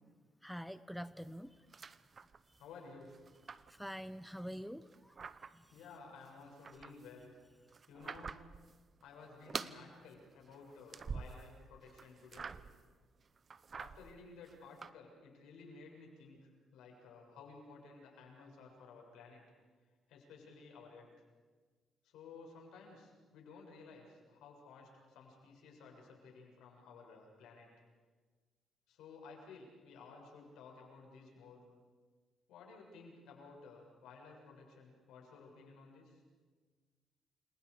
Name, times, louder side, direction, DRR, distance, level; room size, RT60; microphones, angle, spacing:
voice 1, 0.4-1.6 3.7-5.2 5.5-5.7, equal, ahead, 14 dB, 0.8 m, -46 dB
sound 1, 1.2-2.7 3.0-4.4 4.8-5.9 6.2-8.7 9.0-9.8 10.1-11.6 11.9-12.9 13.3-14.9, right 5 dB, 40° right, 0.9 m, -47 dB
voice 2, 2.6-3.1 5.7-8.4 9.0-12.6 13.8-19.4 20.1-21.1 22.0-27.7 28.9-31.6 32.5-36.2, left 4 dB, 85° left, 0 dB, 7.2 m, -55 dB
29.5 x 26.5 x 5.1 m, 1.4 s
cardioid pair, 90°, 0 cm